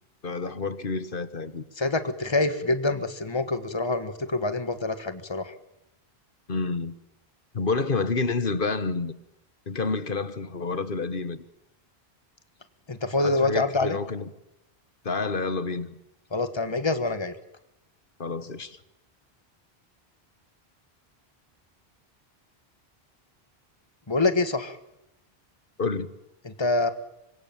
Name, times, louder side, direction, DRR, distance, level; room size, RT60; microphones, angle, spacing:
voice 1, 0.2-1.6 6.5-6.9 7.5-9.1 9.7-11.4 13.2-14.3 15.0-16.0 18.2-18.8 25.8-26.1, left 4 dB, 55° left, 1.6 m, -29 dB
voice 2, 1.8-5.5 12.9-14.0 16.3-17.3 24.1-24.8 26.4-26.9, left 2 dB, 25° left, 1.7 m, -26 dB
26.0 x 22.5 x 9.1 m
omnidirectional pair, 1.1 m